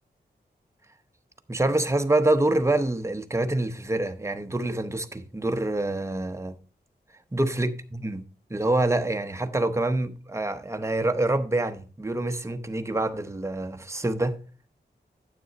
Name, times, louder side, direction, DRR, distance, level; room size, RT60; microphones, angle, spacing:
voice 1, 1.5-6.5 7.3-8.2 8.5-14.4, right 2 dB, 15° right, 0.8 m, -26 dB
9.3 x 7.5 x 4.1 m
wide cardioid pair, 110°, 18 cm